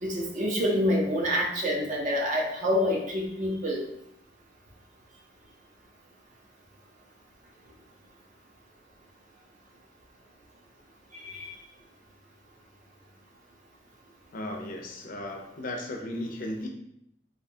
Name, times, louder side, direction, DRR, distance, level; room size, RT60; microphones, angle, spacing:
voice 1, 0.0-3.8 11.2-11.5, equal, 45° right, -1 dB, 0.5 m, -27 dB
voice 2, 14.3-16.7, left 1 dB, 50° left, 2 dB, 0.4 m, -35 dB
2.5 x 2.1 x 2.7 m, 0.75 s
head